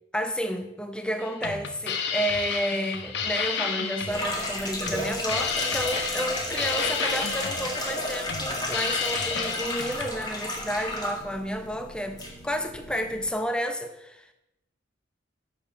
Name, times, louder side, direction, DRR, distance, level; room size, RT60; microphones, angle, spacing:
voice 1, 0.1-14.3, equal, 5° left, 0.7 m, -31 dB
sound 1, 1.2-10.1, left 6 dB, 60° left, 1.0 m, -32 dB
sound 2, 4.1-13.3, left 1 dB, 20° left, 1.8 m, -32 dB
9.4 x 6.3 x 5.8 m
head